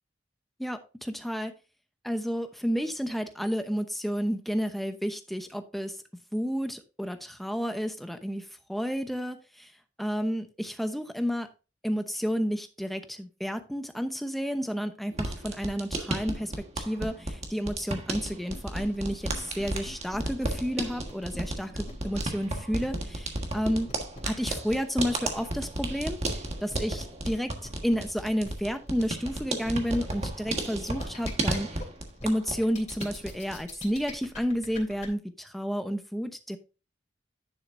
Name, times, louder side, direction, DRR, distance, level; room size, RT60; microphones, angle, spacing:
voice 1, 0.6-1.5 2.0-6.0 6.3-9.7 10.0-11.5 11.8-23.9 24.2-27.5 27.8-31.8 32.2-36.6, equal, ahead, 8 dB, 0.8 m, -31 dB
sound 1, 15.1-32.6 32.9-33.6, right 2 dB, 35° right, 1.5 m, -34 dB
sound 2, 18.5-35.1, left 2 dB, 40° left, 3.3 m, -44 dB
10.5 x 6.4 x 2.6 m, 0.31 s
head